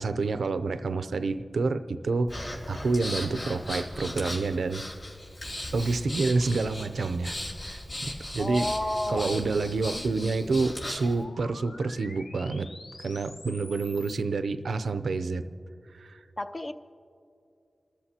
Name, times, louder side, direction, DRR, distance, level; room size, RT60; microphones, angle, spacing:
voice 1, 0.0-4.8 5.7-7.4 7.6-8.7 9.1-12.7 13.0-15.4 15.9-16.2, right 3 dB, 85° right, 11 dB, 0.5 m, -28 dB
Breathing, 2.3-11.1, left 1 dB, 60° left, 3.8 m, -37 dB
sound 1, 7.4-14.2, left 2 dB, 90° left, 1.0 m, -46 dB
voice 2, 8.4-9.5 16.4-16.7, left 1 dB, 30° left, 9 dB, 0.6 m, -30 dB
29.0 x 14.0 x 2.8 m, 2.6 s
wide cardioid pair, 85°, 0 cm